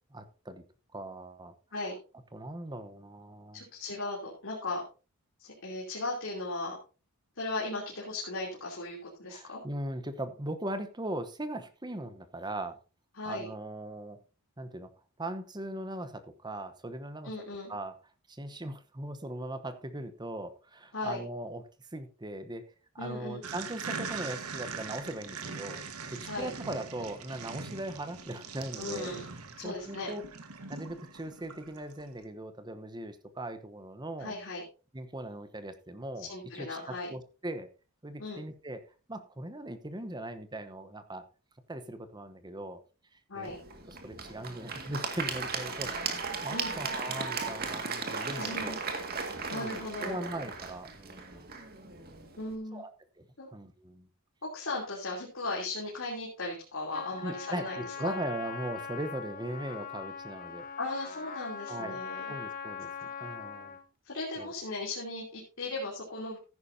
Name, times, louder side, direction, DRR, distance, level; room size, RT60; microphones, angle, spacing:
voice 1, 0.1-0.6 0.9-1.5 2.3-3.7 9.3-12.8 13.2-14.2 14.6-14.9 15.2-17.3 17.7-18.0 18.3-29.1 29.6-30.2 30.7-34.4 34.9-37.7 38.0-38.8 39.1-41.2 41.7-42.8 43.1-43.5 43.9-48.8 49.5-51.5 52.7-52.9 53.2-54.1 57.2-60.7 61.7-62.0 62.3-62.9 63.2-63.8 64.4-64.5, right 1 dB, 20° right, 10 dB, 1.0 m, -39 dB
voice 2, 3.5-4.8 5.4-6.8 7.4-9.6 13.1-13.5 17.2-17.7 20.9-21.2 23.0-23.4 26.2-26.5 28.8-29.3 29.6-30.1 34.2-34.6 36.2-37.1 38.2-38.4 43.3-43.6 46.5-46.7 48.4-48.8 49.5-50.3 52.4-52.8 53.4-53.5 54.4-58.1 60.8-62.3 63.0-63.1 64.0-66.4, left 2 dB, 60° left, -4 dB, 3.2 m, -37 dB
sound 1, 23.4-32.0, right 5 dB, 80° right, 1.5 m, -41 dB
Applause / Crowd, 43.4-52.5, right 4 dB, 45° right, 2.0 m, -36 dB
Trumpet, 56.9-63.9, left 6 dB, 40° left, 1.1 m, -41 dB
14.5 x 10.5 x 2.8 m, 0.34 s
head